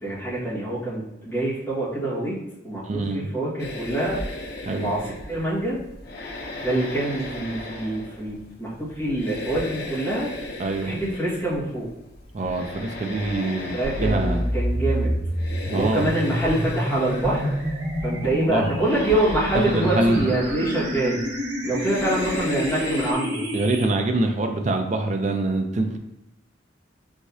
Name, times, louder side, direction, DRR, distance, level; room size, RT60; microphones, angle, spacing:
voice 1, 0.0-4.2 4.8-5.8 6.6-10.3 10.8-11.9 13.7-15.1 15.7-17.5 18.0-21.2 21.6-23.4, right 1 dB, 10° left, -9 dB, 1.5 m, -25 dB
voice 2, 2.8-3.3 4.6-4.9 10.6-10.9 12.3-14.5 15.7-16.1 18.5-18.6 19.5-20.3 23.5-26.0, right 2 dB, 40° right, 4 dB, 0.4 m, -24 dB
sound 1, 3.6-23.1, left 2 dB, 60° left, 0.6 m, -36 dB
sound 2, 13.8-23.8, equal, 65° right, 1.4 m, -28 dB
4.8 x 3.6 x 2.7 m, 0.90 s
head